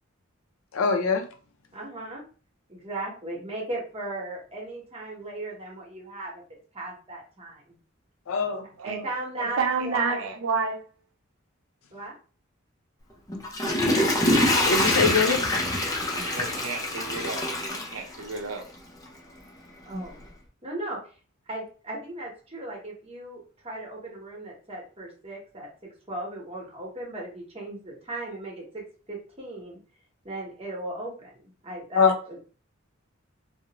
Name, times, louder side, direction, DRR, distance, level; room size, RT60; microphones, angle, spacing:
voice 1, 0.7-1.3 8.3-8.7 14.6-15.4 19.9-20.0 31.9-32.1, left 5 dB, 85° left, 0.5 m, -23 dB
voice 2, 1.7-2.2 2.7-6.4 6.7-7.6 8.8-10.2 11.9-12.1 16.5-17.1 19.8-20.3 20.6-21.0 21.5-29.8 30.2-32.5, right 2 dB, 30° right, 1.0 m, -37 dB
voice 3, 9.4-10.8 16.2-17.5 17.9-18.7, right 5 dB, 90° right, 0.6 m, -30 dB
Water / Toilet flush, 13.3-18.6 19.1-19.2, left 1 dB, 15° left, 0.5 m, -25 dB
2.5 x 2.0 x 2.9 m
head